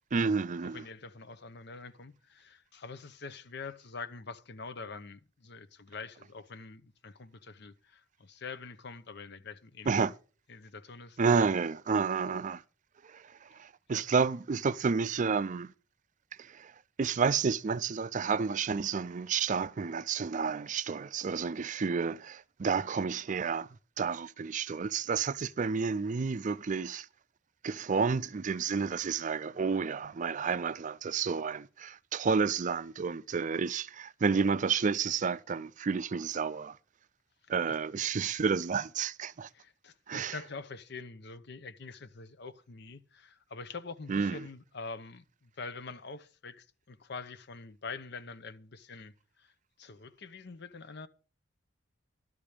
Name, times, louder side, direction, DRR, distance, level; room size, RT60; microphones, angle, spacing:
voice 1, 0.1-0.8 9.9-10.1 11.2-12.6 13.0-15.7 16.4-16.7 17.0-23.7 24.0-27.1 27.6-36.8 37.5-39.5 40.1-40.3 44.1-44.4, right 5 dB, 40° right, 0.4 m, -30 dB
voice 2, 0.6-10.1 10.5-11.4 13.9-14.1 37.7-37.8 39.5-49.5 49.8-51.1, left 4 dB, 65° left, 0.9 m, -45 dB
12.5 x 5.0 x 8.8 m
head